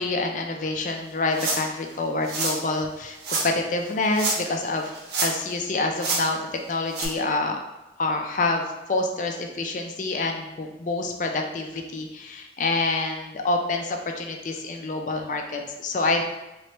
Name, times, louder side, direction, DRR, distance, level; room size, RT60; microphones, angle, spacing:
voice 1, 0.0-4.9 5.2-6.4 6.7-7.6 8.0-16.3, left 2 dB, 45° left, 3 dB, 0.4 m, -27 dB
sound 1, 1.3-1.8 2.2-2.6 3.2-3.5 4.1-4.6 4.9-5.5 6.0-6.2 6.9-7.1, right 3 dB, 70° right, 0.7 m, -27 dB
3.2 x 3.1 x 2.9 m, 1.0 s
head